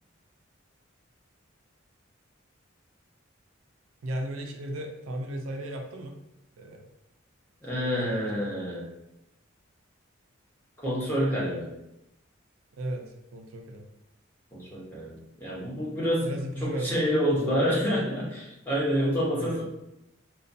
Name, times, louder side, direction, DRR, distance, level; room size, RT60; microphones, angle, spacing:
voice 1, 4.0-6.1 6.6-6.8 7.7-8.5 12.8-13.0 13.3-13.9 16.2-17.1 19.3-19.6, right 1 dB, 90° right, 3 dB, 0.4 m, -35 dB
voice 2, 7.6-8.9 10.8-11.7 14.5-19.6, equal, 10° left, -6 dB, 0.8 m, -28 dB
2.4 x 2.3 x 2.6 m, 0.86 s
head